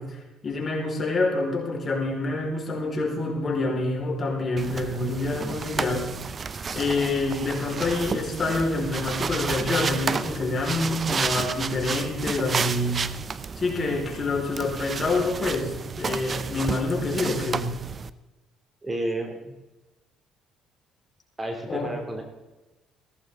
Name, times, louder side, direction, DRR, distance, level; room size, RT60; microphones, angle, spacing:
voice 1, 0.0-6.1 6.7-13.0 13.6-17.7 21.7-21.9, left 2 dB, 35° left, 0 dB, 4.8 m, -27 dB
sound 1, 4.6-18.1, right 5 dB, 40° right, 0.7 m, -31 dB
voice 2, 18.8-19.5 21.4-22.2, right 1 dB, 25° right, 3 dB, 2.8 m, -31 dB
16.5 x 14.0 x 3.8 m, 1.1 s
supercardioid pair, 75°, 0 cm